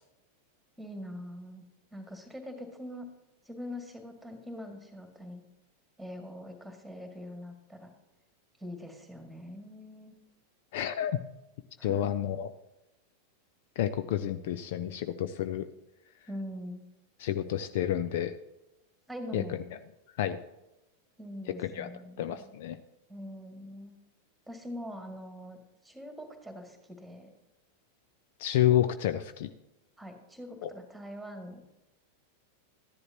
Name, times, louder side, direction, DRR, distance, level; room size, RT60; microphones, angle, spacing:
voice 1, 0.8-1.6 1.9-3.1 3.5-5.4 6.0-7.9 8.6-10.1 11.8-12.1 16.3-16.8 19.1-19.6 21.2-22.5 23.1-24.0 24.5-25.6 25.8-27.3 30.0-31.6, equal, ahead, 4 dB, 2.0 m, -43 dB
voice 2, 10.7-11.2 11.8-12.5 13.8-15.7 17.2-18.4 19.3-19.6 20.2-20.4 21.6-21.9 22.2-22.8 28.4-29.5 30.6-30.7, left 11 dB, 55° left, 11 dB, 0.4 m, -29 dB
13.5 x 10.5 x 2.9 m, 0.96 s
figure-of-eight pair, 90°, 0 cm